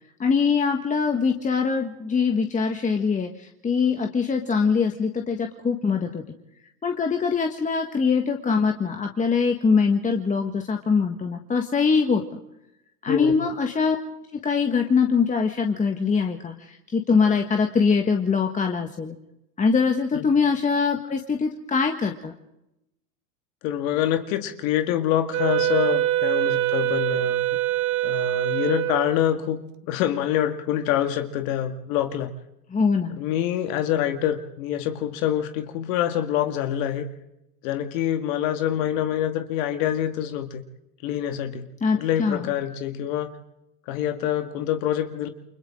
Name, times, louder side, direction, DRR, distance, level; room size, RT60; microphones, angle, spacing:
voice 1, 0.2-6.2 6.8-12.2 13.0-14.0 14.4-19.1 19.6-22.3 32.7-33.2 41.8-42.4, left 5 dB, 15° left, 4 dB, 1.6 m, -23 dB
voice 2, 23.6-27.6 28.0-29.6 29.9-32.3 33.1-37.1 37.6-40.6 41.0-41.7 41.9-43.3 43.9-45.3, left 11 dB, 55° left, 7 dB, 2.0 m, -26 dB
Wind instrument woodwind instrument, 25.3-29.1, right 14 dB, 40° right, 1.4 m, -24 dB
29.5 x 24.5 x 3.8 m, 0.87 s
hypercardioid pair, 110°, 47 cm